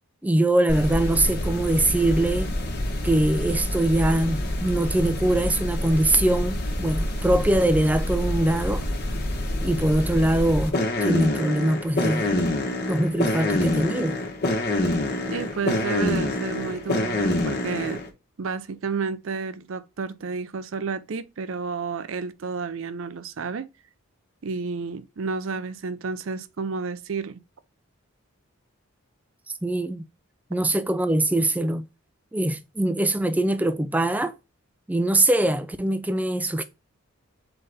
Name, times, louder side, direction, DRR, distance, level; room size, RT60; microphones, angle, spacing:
voice 1, 0.2-2.6 3.0-8.9 9.6-12.3 12.9-14.2 29.6-30.1 30.5-31.8 32.3-34.3 34.9-36.6, right 1 dB, 5° right, 0.4 m, -23 dB
sound 1, 0.7-18.1, left 1 dB, 50° left, 1.1 m, -27 dB
voice 2, 15.3-18.0 18.4-23.7 24.4-27.4, right 5 dB, 65° right, 0.5 m, -31 dB
4.0 x 3.9 x 3.4 m
head